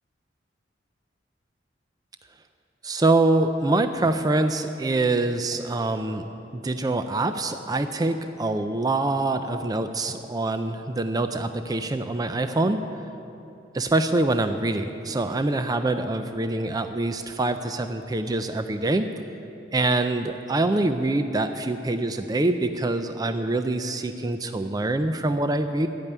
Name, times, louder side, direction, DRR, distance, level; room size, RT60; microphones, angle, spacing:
voice 1, 2.8-6.3 6.5-12.8 13.7-19.1 19.7-25.9, right 2 dB, 20° right, 8 dB, 0.4 m, -25 dB
12.0 x 8.8 x 9.4 m, 2.9 s
head